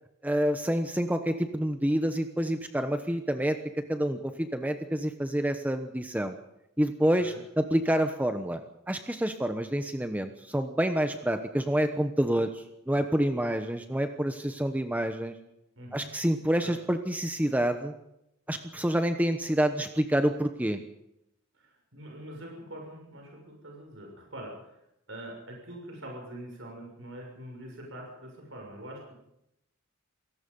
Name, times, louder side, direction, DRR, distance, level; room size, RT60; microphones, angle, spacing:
voice 1, 0.2-6.4 6.8-8.6 8.9-15.3 15.9-17.9 18.5-20.8, right 1 dB, 10° right, 7 dB, 1.0 m, -28 dB
voice 2, 15.7-16.1 16.6-16.7 21.5-24.8 25.1-29.1, right 1 dB, 65° right, 1 dB, 6.4 m, -44 dB
28.0 x 18.5 x 5.5 m, 0.82 s
head